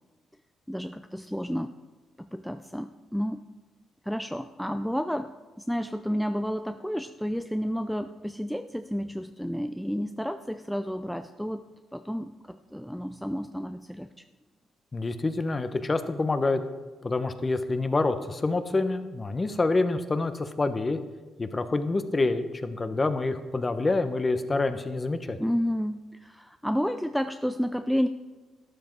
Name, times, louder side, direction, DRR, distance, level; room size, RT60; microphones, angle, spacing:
voice 1, 0.7-1.7 2.2-3.4 4.0-11.6 11.9-14.2 25.4-28.1, equal, ahead, 8 dB, 0.5 m, -31 dB
voice 2, 14.9-16.6 17.0-21.0 21.4-25.4, left 3 dB, 25° left, 9 dB, 1.1 m, -27 dB
12.5 x 11.0 x 4.7 m, 1.2 s
cardioid pair, 90°, 0 cm